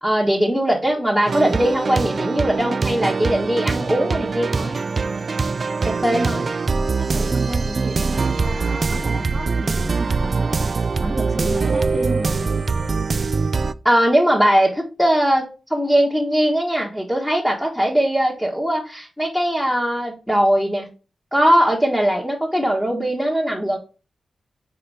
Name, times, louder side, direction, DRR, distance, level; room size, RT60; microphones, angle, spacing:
voice 1, 0.0-4.8 5.8-6.5 13.8-20.9 21.3-23.8, equal, ahead, 1.4 m, -20 dB
sound 1, 1.3-13.7, right 4 dB, 45° right, 0.3 m, -23 dB
voice 2, 7.0-12.5, right 2 dB, 25° right, 1.3 m, -31 dB
4.9 x 4.2 x 5.5 m
wide cardioid pair, 110°, 0 cm